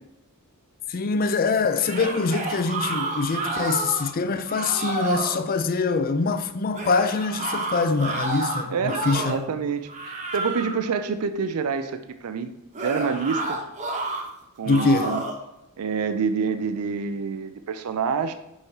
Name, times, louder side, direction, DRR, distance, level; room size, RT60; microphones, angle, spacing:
voice 1, 0.9-9.5 14.7-15.2, left 4 dB, 40° left, 0.4 m, -24 dB
sound 1, 1.7-4.1 4.5-5.4 6.7-9.5 9.9-10.9 12.7-14.2 14.7-15.4, right 2 dB, 35° right, 0.9 m, -30 dB
voice 2, 8.7-12.5 12.8-13.6 14.6-15.2 15.8-18.3, right 5 dB, 80° right, 0.4 m, -27 dB
5.8 x 5.5 x 3.2 m
head